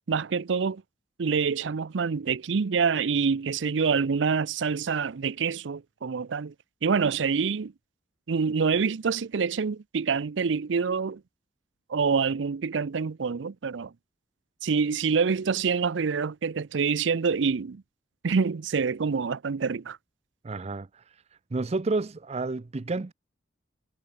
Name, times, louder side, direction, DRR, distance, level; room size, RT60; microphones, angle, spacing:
voice 1, 0.1-0.8 1.2-6.5 6.8-7.7 8.3-11.2 11.9-13.9 14.6-17.8 18.2-20.0, right 5 dB, 90° right, 0.5 m, -26 dB
voice 2, 20.4-21.2 21.5-23.1, right 3 dB, 35° right, 0.5 m, -30 dB
head